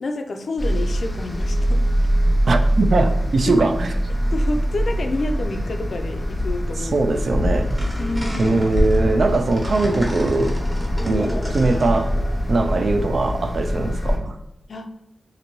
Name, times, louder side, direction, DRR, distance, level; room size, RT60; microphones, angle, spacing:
voice 1, 0.0-1.8 3.5-3.6 4.3-7.1 8.0-8.6 14.7-14.9, left 2 dB, 60° left, 6 dB, 0.3 m, -28 dB
sound 1, 0.6-14.2, equal, 5° left, 0.5 m, -23 dB
voice 2, 2.5-3.9 6.8-7.8 8.4-10.6 11.0-12.1 12.5-14.4, right 3 dB, 60° right, 7 dB, 0.3 m, -21 dB
sound 2, 7.6-13.7, equal, 15° right, 1.0 m, -28 dB
4.0 x 2.6 x 2.9 m, 0.85 s
wide cardioid pair, 150°, 0 cm